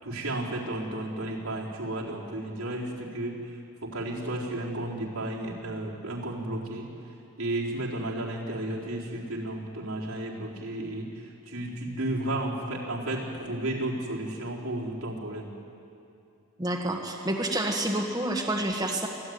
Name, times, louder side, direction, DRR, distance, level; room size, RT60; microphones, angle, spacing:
voice 1, 0.0-3.3 3.8-6.9 7.4-11.1 11.5-15.5, right 1 dB, 85° right, -4 dB, 4.2 m, -33 dB
voice 2, 16.6-19.1, right 1 dB, 20° right, 0 dB, 1.7 m, -28 dB
24.0 x 15.5 x 9.6 m, 2.6 s
head